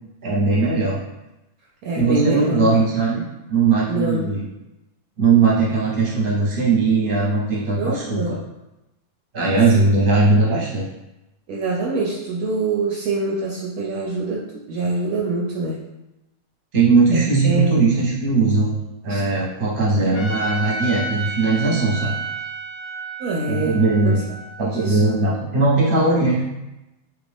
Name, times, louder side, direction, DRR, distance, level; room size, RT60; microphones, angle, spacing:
voice 1, 0.2-1.0 1.9-3.2 3.5-4.4 5.2-8.4 9.3-10.9 16.7-22.2 23.5-24.2 24.6-26.4, right 3 dB, 40° right, -6 dB, 1.0 m, -19 dB
voice 2, 1.8-2.8 3.9-4.3 7.8-8.4 9.8-9.9 11.5-14.4 14.7-15.8 17.1-17.9 19.1-19.2 23.2-23.8 24.0-24.2 24.6-25.0, right 2 dB, 75° right, -4 dB, 1.0 m, -25 dB
Trumpet, 20.1-25.3, right 2 dB, 65° left, 0.8 m, -31 dB
3.1 x 2.5 x 3.4 m, 0.96 s
omnidirectional pair, 1.7 m